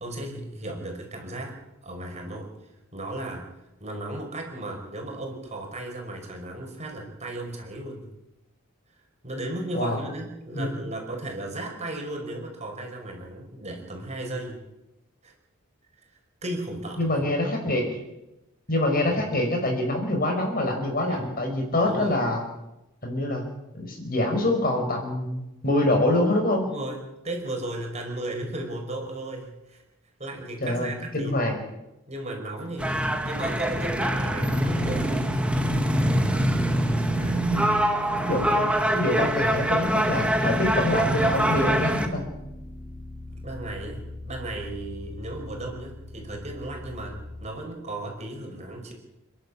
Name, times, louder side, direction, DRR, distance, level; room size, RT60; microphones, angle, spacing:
voice 1, 0.0-2.5 2.9-3.5 3.8-8.1 9.2-14.6 15.2-15.3 16.4-17.2 19.2-19.3 21.0-21.2 21.8-22.2 26.7-29.8 30.2-31.4 32.1-32.9 33.2-35.3 37.2-37.5 43.4-48.9, right 1 dB, 30° right, 2 dB, 5.3 m, -35 dB
voice 2, 17.0-17.8 18.7-22.4 23.0-23.4 23.7-25.4 25.6-26.7 30.6-31.6 37.5-37.6 38.2-38.7 38.9-42.2, left 1 dB, 40° left, 3 dB, 5.5 m, -25 dB
sound 1, 32.8-42.1, right 1 dB, 5° right, 1.9 m, -24 dB
sound 2, 41.2-47.5, left 1 dB, 15° left, 6.4 m, -40 dB
29.5 x 11.5 x 8.7 m, 0.93 s
head